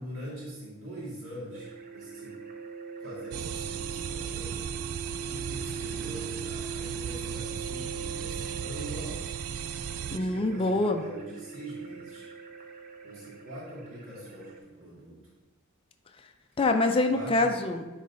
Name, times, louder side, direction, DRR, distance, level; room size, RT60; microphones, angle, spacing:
voice 1, 0.0-2.4 3.0-4.8 5.2-9.2 9.9-12.3 13.0-15.2 17.1-17.5, right 1 dB, 65° right, -7 dB, 2.1 m, -43 dB
sound 1, 1.5-14.6, right 4 dB, 40° right, 0.6 m, -42 dB
sound 2, 3.3-10.2, right 8 dB, 85° right, 0.3 m, -36 dB
voice 2, 10.1-11.0 16.6-17.9, left 2 dB, 25° left, 5 dB, 0.4 m, -25 dB
9.5 x 3.2 x 3.8 m, 1.2 s
head